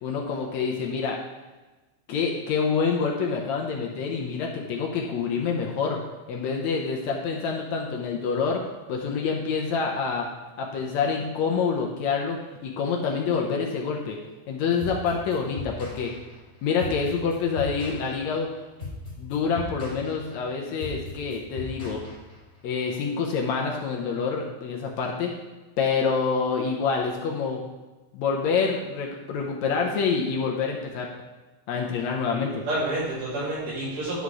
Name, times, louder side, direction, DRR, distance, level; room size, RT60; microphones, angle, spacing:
voice 1, 0.0-1.2 2.1-6.0 6.3-8.6 8.9-10.3 10.6-14.2 14.5-16.1 16.6-18.5 19.2-22.0 22.6-25.3 25.8-27.6 28.1-31.1 31.7-32.6, left 5 dB, 70° left, 0 dB, 1.9 m, -27 dB
sound 1, 14.8-22.6, left 3 dB, 35° left, 2.9 m, -38 dB
voice 2, 32.3-34.2, right 1 dB, 80° right, -7 dB, 4.4 m, -29 dB
11.0 x 4.3 x 4.7 m, 1.2 s
omnidirectional pair, 3.7 m